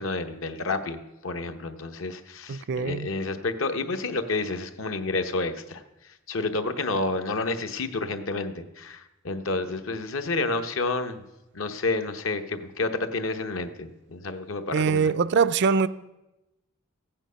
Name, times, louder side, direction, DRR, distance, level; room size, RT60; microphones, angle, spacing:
voice 1, 0.0-5.8 6.3-11.2 11.5-15.1, left 3 dB, 75° left, 1.0 m, -30 dB
voice 2, 2.5-3.1 14.7-15.9, right 5 dB, 60° right, 0.4 m, -23 dB
15.0 x 8.9 x 5.6 m
head